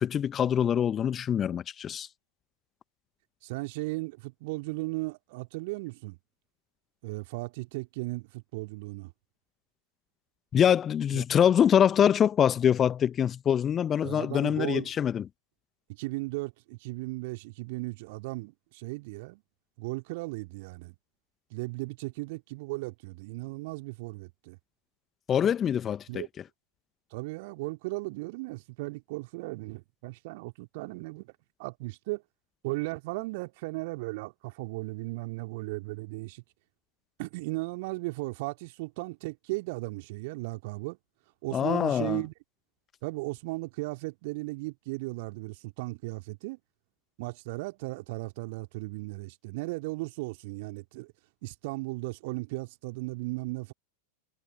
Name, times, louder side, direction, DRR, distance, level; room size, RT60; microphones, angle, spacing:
voice 1, 0.0-2.1 10.5-15.2 25.3-26.2 41.5-42.2, left 9 dB, 25° left, 1.3 m, -24 dB
voice 2, 3.4-6.2 7.0-9.1 11.1-11.3 14.0-14.9 15.9-19.4 19.8-20.9 21.5-24.6 26.1-26.3 27.1-31.3 31.6-32.2 32.6-36.4 37.2-41.0 41.4-42.3 43.0-46.6 47.2-51.1 51.4-53.7, right 24 dB, 50° right, 3.0 m, -36 dB
figure-of-eight pair, 90°, 0 cm